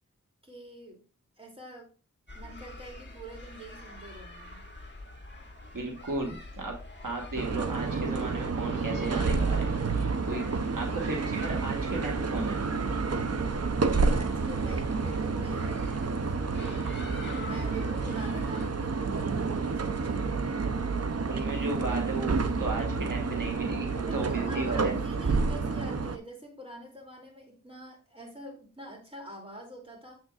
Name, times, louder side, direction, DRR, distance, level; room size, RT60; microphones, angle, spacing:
voice 1, 0.4-1.0 1.4-1.9 2.3-4.6 14.1-17.0 17.4-20.4 24.1-30.2, right 1 dB, 15° right, -1 dB, 2.7 m, -45 dB
sound 1, 2.3-18.7, left 2 dB, 35° left, 1.7 m, -45 dB
voice 2, 5.7-6.8 7.0-9.7 10.2-10.4 10.8-12.6 21.3-24.9, right 3 dB, 85° right, 0 dB, 1.5 m, -35 dB
sound 2, 7.4-26.2, right 4 dB, 50° right, 0.6 m, -29 dB
7.5 x 6.3 x 2.4 m, 0.37 s
wide cardioid pair, 55°, 32 cm